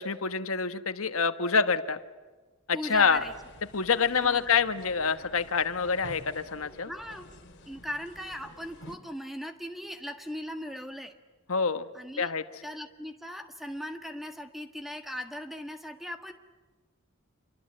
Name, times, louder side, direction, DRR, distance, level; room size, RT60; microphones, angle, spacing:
voice 1, 0.0-2.0 2.7-3.2 3.7-6.9 11.5-11.8 12.2-12.4, left 5 dB, 75° left, 10 dB, 1.3 m, -26 dB
voice 2, 2.7-3.3 4.1-4.5 6.8-7.3 7.7-11.2 11.9-12.3 12.6-16.3, equal, ahead, 6 dB, 1.5 m, -39 dB
sound 1, 2.9-9.0, left 1 dB, 55° left, 2.7 m, -50 dB
28.0 x 24.0 x 8.7 m, 1.3 s
head